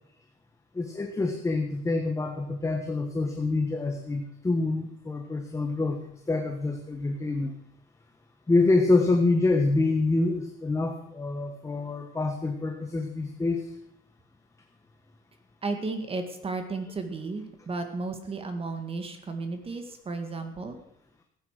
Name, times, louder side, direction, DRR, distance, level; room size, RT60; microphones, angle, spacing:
voice 1, 0.7-7.5 8.5-13.7, left 3 dB, 15° left, 3 dB, 1.3 m, -26 dB
voice 2, 15.6-20.8, right 3 dB, 30° right, 7 dB, 1.8 m, -34 dB
15.5 x 9.3 x 6.6 m, 0.76 s
cardioid pair, 155°, 20 cm